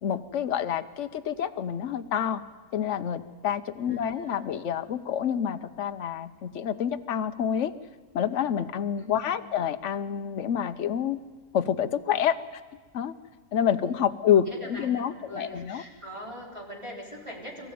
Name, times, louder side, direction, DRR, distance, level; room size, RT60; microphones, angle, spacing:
voice 1, 0.0-2.4 2.7-7.7 8.1-11.2 11.5-12.6 12.9-13.1 13.5-15.8, left 9 dB, 65° left, 10 dB, 1.2 m, -28 dB
voice 2, 3.8-4.5 9.0-9.4 13.8-17.7, equal, 20° right, -1 dB, 4.0 m, -43 dB
23.5 x 14.5 x 9.4 m, 1.4 s
omnidirectional pair, 1.4 m